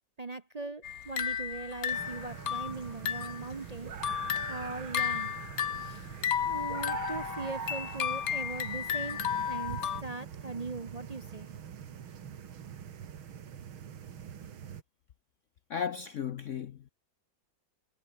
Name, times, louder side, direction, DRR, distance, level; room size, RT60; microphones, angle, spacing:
voice 1, 0.2-3.9 4.5-5.4 5.7-6.1 6.5-9.2 9.4-11.5, right 3 dB, 45° right, 0.4 m, -40 dB
sound 1, 0.8-3.5 3.8-10.0, left 9 dB, 50° left, 1.4 m, -33 dB
sound 2, 1.9-14.8, right 8 dB, 85° right, 2.5 m, -43 dB
voice 2, 15.7-16.9, left 8 dB, 80° left, 0.6 m, -35 dB
omnidirectional pair, 2.2 m